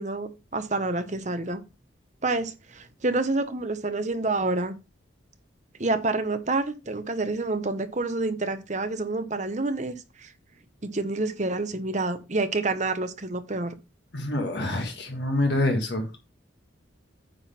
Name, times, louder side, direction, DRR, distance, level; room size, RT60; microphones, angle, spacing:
voice 1, 0.0-1.6 2.2-4.8 5.8-10.3 10.8-13.8, right 2 dB, 40° right, 0.9 m, -28 dB
voice 2, 14.1-16.1, left 1 dB, 55° left, 1.6 m, -26 dB
9.3 x 3.8 x 5.8 m
head